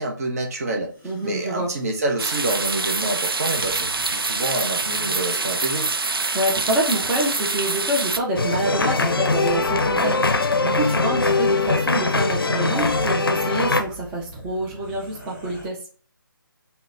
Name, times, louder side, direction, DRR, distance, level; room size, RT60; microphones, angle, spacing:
voice 1, 0.0-0.9 1.2-5.9, right 2 dB, 45° right, 2 dB, 0.7 m, -27 dB
sound 1, 0.8-5.6 7.0-7.1 7.3-8.0 8.3-8.8 9.3-10.1 10.3-10.6 11.7-11.8 12.2-12.3 12.6-15.7, equal, 25° right, 1.3 m, -45 dB
voice 2, 1.0-1.7 6.3-15.8, right 1 dB, 5° right, -3 dB, 0.4 m, -26 dB
sound 2, 2.2-8.2, right 3 dB, 90° right, 0.4 m, -25 dB
sound 3, 8.4-13.8, left 3 dB, 85° left, 0.5 m, -21 dB
3.7 x 2.1 x 2.5 m, 0.42 s
figure-of-eight pair, 150°, 12 cm